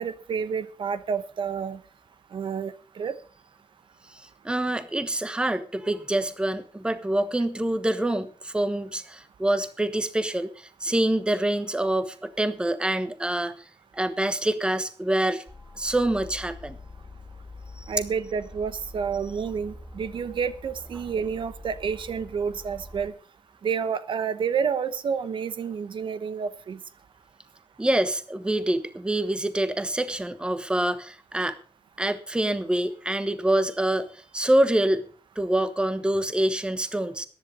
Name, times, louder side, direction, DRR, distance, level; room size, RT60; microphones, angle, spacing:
voice 1, 0.0-1.8 2.3-3.2 17.9-23.1 23.6-26.8, right 6 dB, 65° right, 13 dB, 0.9 m, -29 dB
voice 2, 4.4-13.5 13.9-15.4 15.8-16.8 17.8-17.9 27.8-31.6 32.0-34.1 34.3-35.0 35.4-37.3, right 1 dB, 10° right, 12 dB, 1.2 m, -26 dB
sound 1, 15.5-23.1, left 1 dB, 5° left, 2.7 m, -45 dB
14.5 x 10.5 x 5.4 m, 0.40 s
wide cardioid pair, 145°, 9 cm